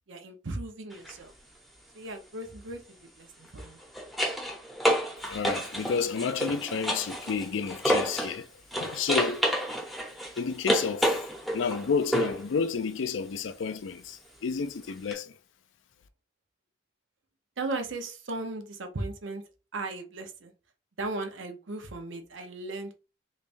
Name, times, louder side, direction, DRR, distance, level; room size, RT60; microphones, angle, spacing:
voice 1, 0.1-1.3 1.9-3.8 17.6-19.4 19.7-20.5 21.0-22.9, right 2 dB, 85° right, 0.8 m, -37 dB
sound 1, 0.9-1.1 3.4-8.4 8.7-12.5 15.1-15.2, equal, ahead, 0.9 m, -29 dB
voice 2, 5.2-8.5 8.8-9.5 10.4-11.2 11.5-15.4, left 5 dB, 85° left, 0.4 m, -31 dB
3.4 x 3.2 x 2.6 m
head